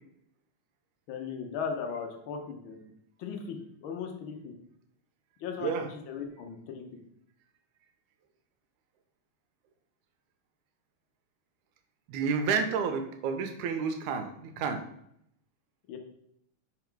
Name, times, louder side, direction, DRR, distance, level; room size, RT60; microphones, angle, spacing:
voice 1, 1.1-2.8 3.2-4.5 5.4-6.8 15.9-16.0, left 6 dB, 85° left, 3 dB, 1.1 m, -37 dB
voice 2, 12.1-14.8, right 5 dB, 90° right, 7 dB, 2.2 m, -30 dB
5.9 x 4.7 x 4.6 m, 0.75 s
omnidirectional pair, 3.4 m